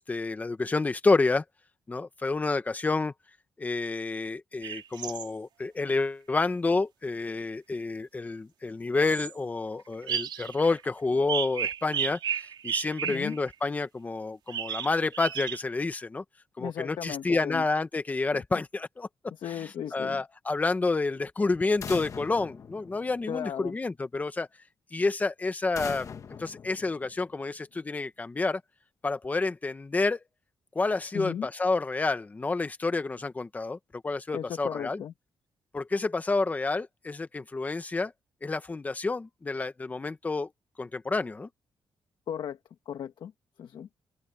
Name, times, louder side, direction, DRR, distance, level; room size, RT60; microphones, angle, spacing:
voice 1, 0.0-1.4 1.9-3.1 3.6-16.2 16.6-19.1 19.5-24.5 24.9-26.1 26.4-28.6 29.0-30.2 30.7-35.0 35.7-38.1 38.4-40.5 40.8-41.5, left 3 dB, 20° left, 1.2 m, -29 dB
sound 1, 4.6-5.3 9.0-9.3 10.0-10.8 11.3-13.5 14.5-15.6, right 9 dB, 65° right, 3.7 m, -33 dB
voice 2, 13.0-13.4 16.6-17.6 19.3-20.2 23.3-23.8 31.1-31.5 34.3-35.1 42.3-42.6 42.9-43.3 43.6-43.9, left 9 dB, 60° left, 1.3 m, -36 dB
sound 2, 21.8-23.6 25.8-27.5, left 6 dB, 40° left, 1.4 m, -41 dB
wide cardioid pair, 170°, 9 cm